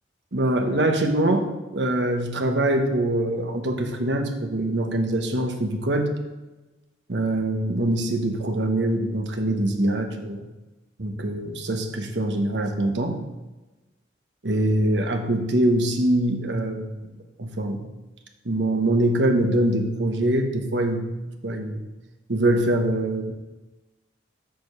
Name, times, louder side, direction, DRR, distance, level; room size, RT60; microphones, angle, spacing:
voice 1, 0.3-1.5 1.7-6.1 7.1-10.5 11.0-13.2 14.4-17.0 17.4-17.8 18.4-21.0 21.4-21.8 22.3-23.3, right 1 dB, 75° right, 5 dB, 1.1 m, -23 dB
7.8 x 5.0 x 6.6 m, 1.1 s
head